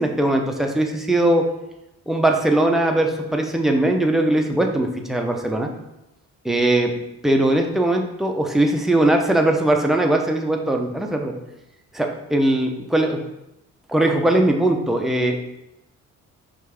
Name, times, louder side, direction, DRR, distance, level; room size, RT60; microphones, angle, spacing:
voice 1, 0.0-1.5 2.1-5.7 6.4-6.9 7.2-11.3 11.9-13.2 13.9-15.4, right 1 dB, ahead, 2 dB, 0.5 m, -20 dB
5.2 x 2.4 x 3.3 m, 0.90 s
cardioid pair, 90°, 30 cm